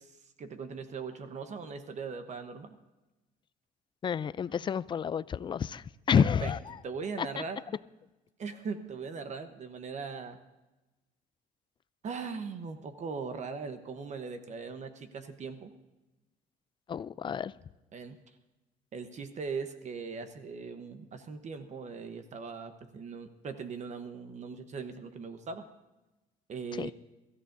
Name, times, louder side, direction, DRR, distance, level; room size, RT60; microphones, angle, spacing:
voice 1, 0.4-2.8 6.1-6.5 6.8-7.6 8.4-10.4 12.0-15.7 17.9-18.2 18.9-25.7 26.5-26.9, right 5 dB, 45° right, 9 dB, 1.0 m, -39 dB
voice 2, 4.0-6.7 7.2-7.3 16.9-17.5 26.7-26.9, left 7 dB, 30° left, 17 dB, 0.4 m, -29 dB
23.0 x 14.0 x 2.6 m, 1.1 s
cardioid pair, 110°, 17 cm